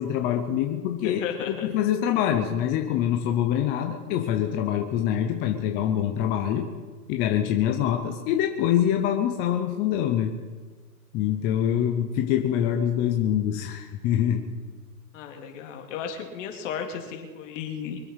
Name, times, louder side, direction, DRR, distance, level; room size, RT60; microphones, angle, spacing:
voice 1, 0.0-6.7 7.1-10.4 11.1-14.5, left 10 dB, 20° left, 3 dB, 0.7 m, -25 dB
voice 2, 1.0-1.7 15.1-18.0, left 7 dB, 50° left, 3 dB, 2.8 m, -34 dB
24.0 x 8.1 x 5.7 m, 1.5 s
hypercardioid pair, 150°, 49 cm